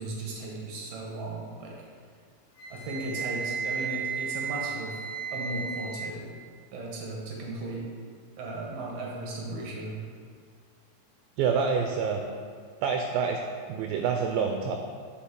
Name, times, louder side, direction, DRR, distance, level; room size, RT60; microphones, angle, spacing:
voice 1, 0.0-1.7 2.7-5.0 5.3-6.3 6.7-7.9 8.4-10.0, right 1 dB, 65° right, -2 dB, 1.9 m, -36 dB
Wind instrument woodwind instrument, 2.6-6.1, right 6 dB, 80° left, 1.4 m, -34 dB
voice 2, 11.4-12.2 12.8-13.4 13.7-14.8, right 6 dB, 80° right, 3 dB, 2.2 m, -27 dB
8.5 x 5.7 x 3.7 m, 2.1 s
omnidirectional pair, 4.5 m